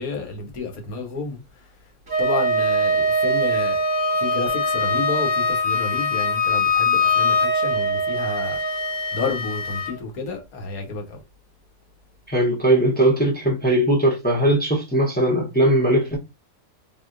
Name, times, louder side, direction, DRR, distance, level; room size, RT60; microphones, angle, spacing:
voice 1, 0.0-1.4 2.2-3.8 4.2-8.6 9.1-11.2, left 3 dB, 65° left, 1.3 m, -30 dB
Wind instrument woodwind instrument, 2.1-9.9, left 1 dB, 20° right, 1.0 m, -22 dB
voice 2, 12.3-16.2, right 1 dB, 15° left, 0.3 m, -19 dB
3.7 x 2.7 x 2.5 m
omnidirectional pair, 1.7 m